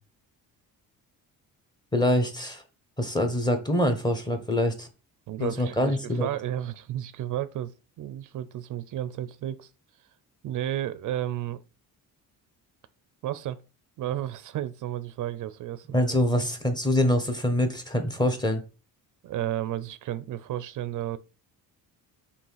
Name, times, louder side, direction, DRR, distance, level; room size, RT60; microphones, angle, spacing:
voice 1, 1.9-2.6 3.0-4.9 5.4-6.3 15.9-18.6, left 1 dB, 10° left, 1.1 m, -25 dB
voice 2, 5.3-9.7 10.4-11.6 13.2-13.6 14.0-16.0 19.2-21.2, right 12 dB, 60° right, 0.5 m, -32 dB
5.4 x 3.3 x 5.6 m
cardioid pair, 140°, 36 cm